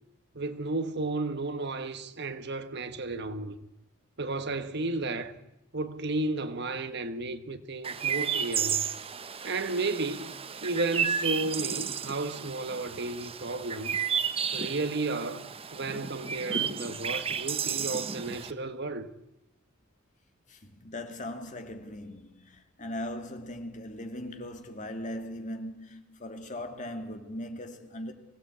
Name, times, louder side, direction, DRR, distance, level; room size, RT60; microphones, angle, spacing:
voice 1, 0.3-3.6 4.2-5.4 5.7-8.9 9.4-10.3 10.6-14.0 14.5-19.1, right 2 dB, 55° right, 1.4 m, -33 dB
Chirp tweet, 7.8-18.5, right 7 dB, 30° right, 0.8 m, -33 dB
voice 2, 20.5-28.1, left 1 dB, 35° left, 2.2 m, -39 dB
24.5 x 16.5 x 8.5 m
head